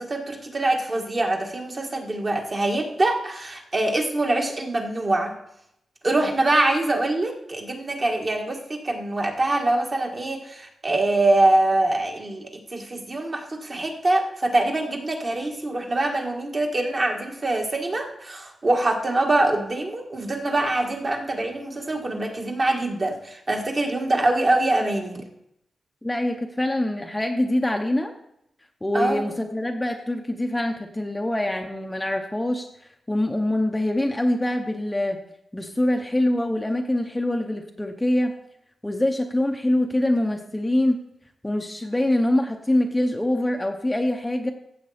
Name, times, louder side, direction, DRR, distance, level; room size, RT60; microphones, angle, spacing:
voice 1, 0.0-5.3 6.0-25.2 28.9-29.2, right 2 dB, 30° right, 2 dB, 1.7 m, -24 dB
voice 2, 26.0-28.1 28.8-32.7 33.1-35.2 35.5-38.3 38.8-41.0 41.4-44.5, left 1 dB, 10° left, 3 dB, 0.8 m, -24 dB
15.0 x 7.5 x 4.2 m, 0.78 s
wide cardioid pair, 135°, 0 cm